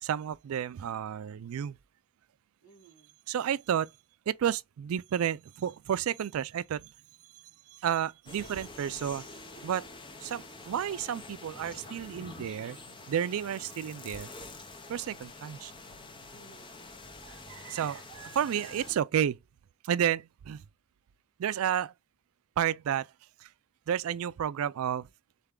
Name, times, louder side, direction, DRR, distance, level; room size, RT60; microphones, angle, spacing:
voice 1, 0.0-1.8 3.3-3.9 4.3-6.9 7.8-9.2 9.6-9.8 10.2-12.8 13.1-14.3 14.9-15.7 17.2-19.4 19.8-20.6 21.4-21.9 22.6-23.1 23.4-23.5 23.9-25.1, right 9 dB, 80° right, 0.3 m, -31 dB
voice 2, 2.6-3.1 8.4-9.1 9.6-9.9 16.3-16.8, right 2 dB, 80° left, 2.6 m, -57 dB
sound 1, 8.3-19.0, left 3 dB, 25° left, 0.7 m, -47 dB
4.0 x 3.4 x 3.7 m
head